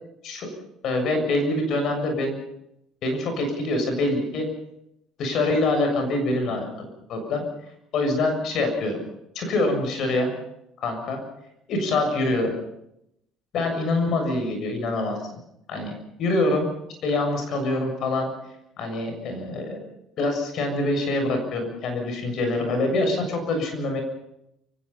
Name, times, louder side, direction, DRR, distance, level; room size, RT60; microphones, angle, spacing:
voice 1, 0.8-2.4 3.0-4.5 5.2-7.5 7.9-9.0 9.4-10.3 10.8-11.2 11.7-12.5 13.5-15.2 15.7-15.9 16.2-16.7 17.0-18.3 18.8-19.8 20.2-24.0, left 2 dB, 60° left, 5 dB, 7.2 m, -25 dB
29.5 x 17.0 x 5.7 m, 0.79 s
supercardioid pair, 85°, 0 cm